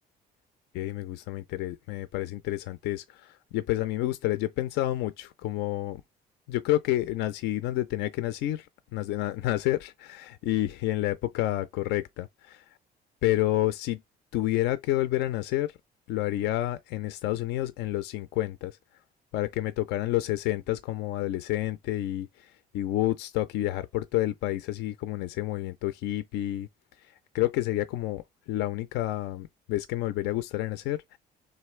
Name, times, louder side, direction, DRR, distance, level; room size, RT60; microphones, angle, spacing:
voice 1, 0.7-6.0 6.5-12.6 13.2-14.0 14.3-15.7 16.1-18.8 19.3-26.7 27.3-31.2, left 15 dB, 85° left, 0.4 m, -29 dB
4.0 x 3.2 x 3.1 m
cardioid pair, 110°, 17 cm